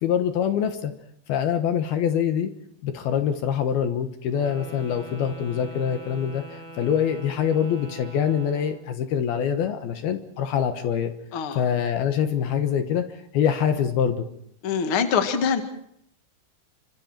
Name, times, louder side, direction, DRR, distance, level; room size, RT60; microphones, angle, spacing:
voice 1, 0.0-0.9 1.3-2.5 2.8-11.1 11.6-13.0 13.3-14.3, left 8 dB, 70° left, 7 dB, 3.0 m, -24 dB
Wind instrument woodwind instrument, 4.3-8.9, right 1 dB, 20° right, 0.8 m, -43 dB
voice 2, 11.3-11.6 14.6-15.6, left 6 dB, 40° left, 6 dB, 2.2 m, -24 dB
29.5 x 26.0 x 4.5 m, 0.69 s
omnidirectional pair, 4.9 m